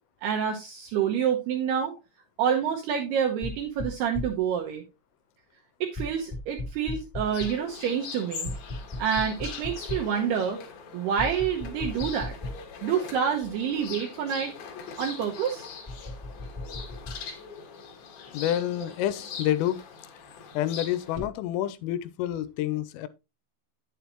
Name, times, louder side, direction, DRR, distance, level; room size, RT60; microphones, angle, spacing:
voice 1, 0.2-1.9 2.4-4.8 5.8-8.5 9.0-10.6 10.9-12.3 12.8-14.5 15.0-15.7, right 8 dB, 80° right, 2.4 m, -27 dB
sound 1, 3.4-4.5 5.9-7.7 8.4-10.2 11.2-12.8 13.4-13.5 15.8-17.2 21.1-21.3, left 1 dB, 10° left, 1.1 m, -37 dB
sound 2, 7.2-21.2, left 6 dB, 65° left, 2.6 m, -42 dB
voice 2, 18.3-19.8 20.5-23.1, left 12 dB, 85° left, 3.2 m, -28 dB
9.2 x 7.4 x 2.9 m
omnidirectional pair, 5.8 m